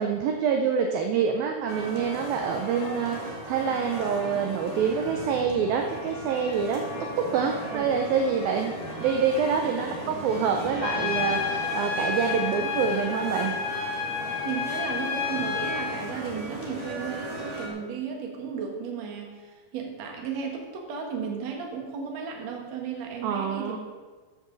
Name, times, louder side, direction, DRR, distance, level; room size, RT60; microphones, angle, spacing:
voice 1, 0.0-8.7 9.0-13.6 23.2-23.8, right 6 dB, 80° right, 3 dB, 2.1 m, -26 dB
sound 1, 1.7-17.7, right 1 dB, 15° right, 1.2 m, -37 dB
Trumpet, 10.8-16.0, left 6 dB, 90° left, 3.8 m, -30 dB
voice 2, 14.4-23.8, right 6 dB, 55° right, 1 dB, 2.1 m, -34 dB
13.5 x 9.1 x 4.0 m, 1.4 s
omnidirectional pair, 5.0 m